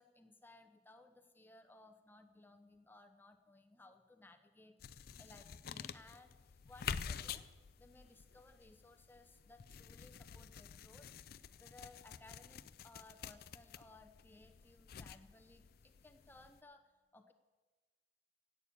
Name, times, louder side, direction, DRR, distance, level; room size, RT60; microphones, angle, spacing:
voice 1, 0.0-7.5 7.8-17.3, left 2 dB, 10° left, 6 dB, 0.6 m, -61 dB
sound 1, 4.8-16.6, left 7 dB, 50° left, 0.4 m, -49 dB
11.5 x 8.5 x 8.5 m, 1.3 s
head